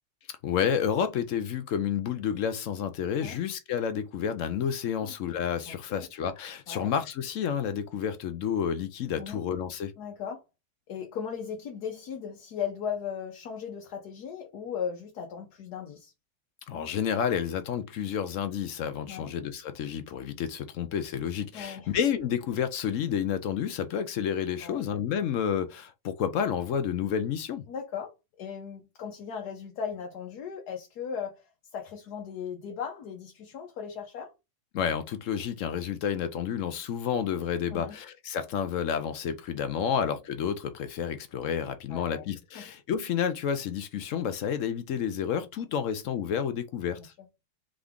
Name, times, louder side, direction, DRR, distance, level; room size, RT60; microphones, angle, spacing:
voice 1, 0.3-9.9 16.7-27.6 34.7-47.1, left 8 dB, 65° left, 0.8 m, -30 dB
voice 2, 5.7-6.1 6.7-6.9 9.2-9.4 10.0-10.4 10.9-16.1 19.1-19.3 21.5-21.9 24.6-24.8 27.7-28.1 28.4-31.4 31.7-34.3 37.7-38.0 39.9-40.0 41.9-42.2 42.5-42.7, left 7 dB, 90° left, 1.4 m, -37 dB
3.7 x 3.5 x 3.5 m
omnidirectional pair, 1.6 m